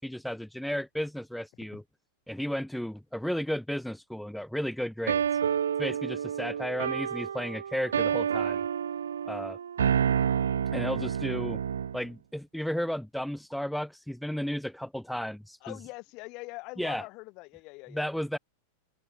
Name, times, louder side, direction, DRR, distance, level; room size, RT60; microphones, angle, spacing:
voice 1, 0.0-1.8 2.3-5.2 5.8-8.6 9.3-9.6 10.7-11.6 11.9-15.7 16.8-17.0 17.9-18.4, equal, ahead, 0.8 m, -33 dB
sound 1, 5.1-12.0, right 8 dB, 65° right, 1.8 m, -29 dB
voice 2, 15.6-18.1, left 25 dB, 40° left, 3.1 m, -43 dB
open air
figure-of-eight pair, 90°, 0 cm